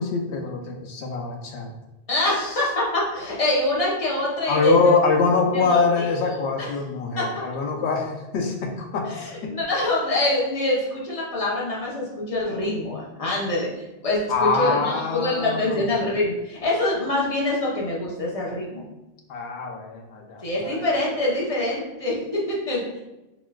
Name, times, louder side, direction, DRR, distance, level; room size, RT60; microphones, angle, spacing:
voice 1, 0.0-1.7 4.5-9.5 14.3-15.9 19.3-20.9, left 4 dB, 90° left, 2 dB, 0.9 m, -24 dB
voice 2, 2.1-4.9 5.5-6.4 7.2-7.3 9.0-18.8 20.4-23.0, left 1 dB, 40° left, -4 dB, 0.7 m, -25 dB
4.0 x 2.3 x 2.2 m, 0.99 s
omnidirectional pair, 1.1 m